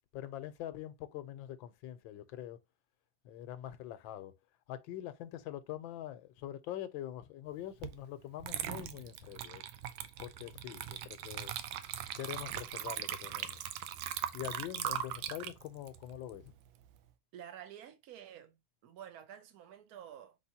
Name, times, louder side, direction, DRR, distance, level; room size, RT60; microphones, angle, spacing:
voice 1, 0.1-2.6 3.2-4.3 4.7-9.6 10.2-11.5 12.2-13.6 14.3-16.4, left 12 dB, 85° left, 1.4 m, -44 dB
Water / Liquid, 7.8-8.0 8.4-17.0, right 11 dB, 80° right, 1.3 m, -40 dB
voice 2, 17.3-18.6 18.8-20.4, right 10 dB, 60° right, 1.1 m, -50 dB
4.6 x 3.6 x 2.7 m
omnidirectional pair, 2.1 m